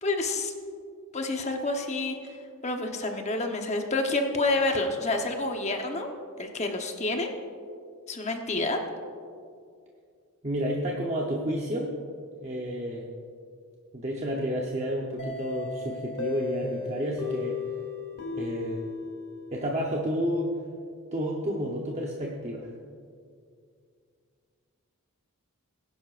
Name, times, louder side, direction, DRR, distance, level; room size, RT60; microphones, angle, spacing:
voice 1, 0.0-0.5 1.1-2.3 2.6-6.1 6.4-7.3 8.1-8.8, left 2 dB, 30° left, 4 dB, 1.0 m, -28 dB
voice 2, 10.4-11.9 12.4-13.1 13.9-17.6 18.4-18.8 19.5-20.5 21.1-22.7, equal, 30° right, -2 dB, 0.9 m, -30 dB
sound 1, 15.2-19.9, left 4 dB, 90° left, 2.7 m, -35 dB
20.5 x 11.0 x 2.5 m, 2.3 s
head